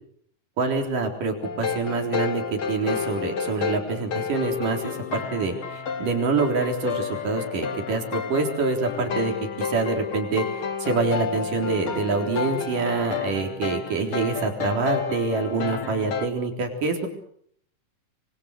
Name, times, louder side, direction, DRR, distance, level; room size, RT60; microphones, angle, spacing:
voice 1, 0.6-17.1, right 4 dB, 75° right, 4 dB, 5.4 m, -26 dB
sound 1, 1.4-16.3, left 6 dB, 45° left, 2.1 m, -31 dB
26.0 x 25.5 x 6.6 m, 0.64 s
omnidirectional pair, 3.8 m